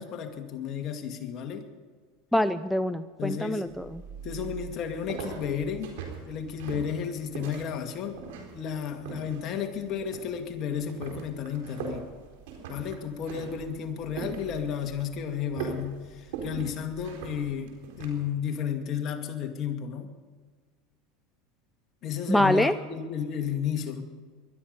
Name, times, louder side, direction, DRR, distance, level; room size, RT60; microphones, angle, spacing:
voice 1, 0.0-1.7 3.2-3.6 4.2-5.9 6.3-8.2 8.5-12.0 12.7-20.1 22.0-24.0, left 8 dB, 45° left, 5 dB, 2.2 m, -33 dB
voice 2, 2.3-4.0 22.3-22.7, left 1 dB, 5° left, 11 dB, 0.6 m, -25 dB
sound 1, 3.7-18.2, right 6 dB, 75° right, 4.1 m, -41 dB
20.5 x 12.5 x 5.4 m, 1.5 s
supercardioid pair, 105°, 0 cm